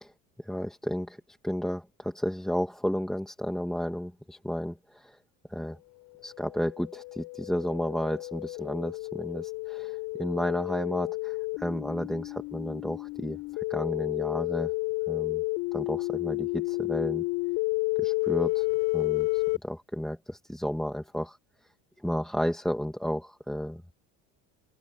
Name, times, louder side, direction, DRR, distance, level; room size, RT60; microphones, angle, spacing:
voice 1, 0.4-5.2 5.5-5.8 6.2-14.7 15.1-15.4 15.7-17.2 18.0-18.7 18.9-21.4 22.0-23.9, equal, ahead, 1.8 m, -32 dB
sound 1, 6.3-19.6, left 25 dB, 75° left, 6.9 m, -31 dB
cardioid pair, 180°, 33 cm